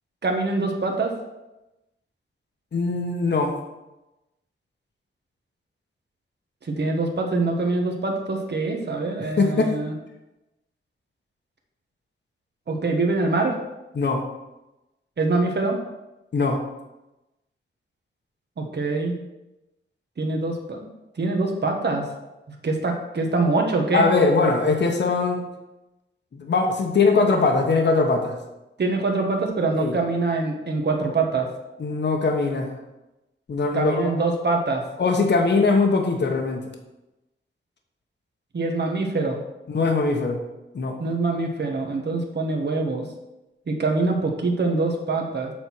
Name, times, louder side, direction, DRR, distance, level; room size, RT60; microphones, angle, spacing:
voice 1, 0.2-1.1 6.6-9.9 12.7-13.6 15.2-15.8 18.6-19.1 20.2-20.9 21.2-22.1 22.5-24.1 28.8-31.5 33.7-34.8 38.5-39.4 41.0-43.1 43.7-45.5, right 3 dB, 55° right, 2 dB, 1.4 m, -24 dB
voice 2, 2.7-3.6 9.4-9.7 13.9-14.2 16.3-16.6 23.9-25.4 26.3-28.4 29.7-30.0 31.8-32.7 33.5-34.1 35.0-36.6 39.7-40.4 40.7-41.0, left 3 dB, 60° left, 3 dB, 1.2 m, -21 dB
7.8 x 4.3 x 6.1 m, 0.99 s
wide cardioid pair, 115°, 21 cm